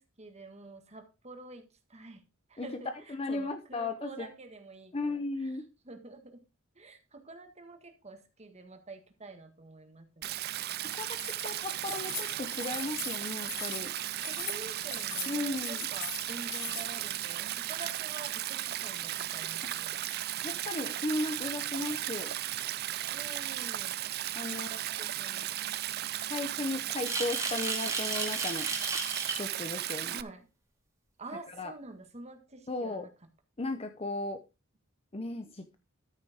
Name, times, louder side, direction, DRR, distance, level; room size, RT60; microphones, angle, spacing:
voice 1, 0.0-2.2 2.5-5.6 5.8-6.4 6.7-10.4 14.3-19.9 23.1-24.0 24.5-25.6 30.1-30.4 31.2-33.1, right 2 dB, 30° right, 7 dB, 1.6 m, -48 dB
voice 2, 3.1-4.3 4.9-5.6 10.9-11.2 11.4-13.9 15.3-15.9 20.4-22.3 24.3-24.7 26.3-28.7 29.4-30.2 31.6-31.7 32.7-33.1 33.6-34.4 35.1-35.8, left 2 dB, 30° left, 7 dB, 0.7 m, -35 dB
Stream, 10.2-30.2, right 13 dB, 50° right, 0.4 m, -36 dB
Keys jangling, 11.0-17.1, left 5 dB, 65° left, 7.4 m, -41 dB
sound 1, 27.0-29.4, right 3 dB, 15° right, 2.4 m, -34 dB
13.0 x 6.6 x 3.5 m, 0.28 s
head